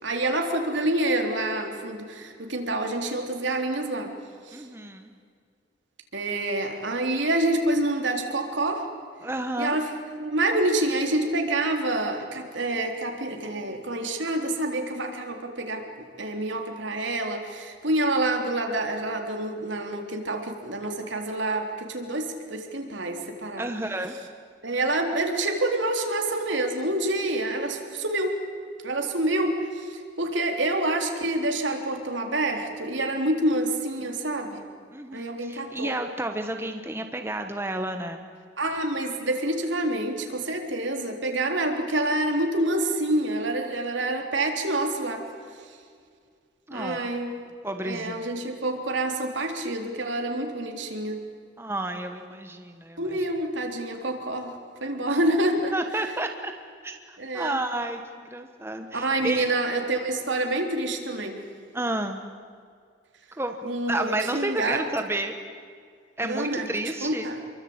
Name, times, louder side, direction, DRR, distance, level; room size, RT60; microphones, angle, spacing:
voice 1, 0.0-4.1 4.5-4.6 6.1-8.9 9.6-9.8 10.2-15.8 16.2-23.7 24.6-28.4 28.8-34.6 35.1-35.9 38.6-45.2 46.7-47.3 47.8-51.2 53.0-54.5 54.8-55.7 57.2-57.6 58.9-61.4 63.6-64.8 66.2-66.7 67.0-67.4, right 1 dB, 70° right, 3 dB, 3.7 m, -27 dB
voice 2, 4.5-5.1 9.2-9.8 23.6-24.1 34.9-38.3 46.7-47.0 47.6-48.3 51.6-53.2 55.1-55.2 55.7-56.5 56.8-59.5 61.7-62.2 63.4-65.4 66.2-67.3, right 1 dB, 10° right, 6 dB, 1.2 m, -31 dB
28.0 x 23.5 x 8.9 m, 2.1 s
head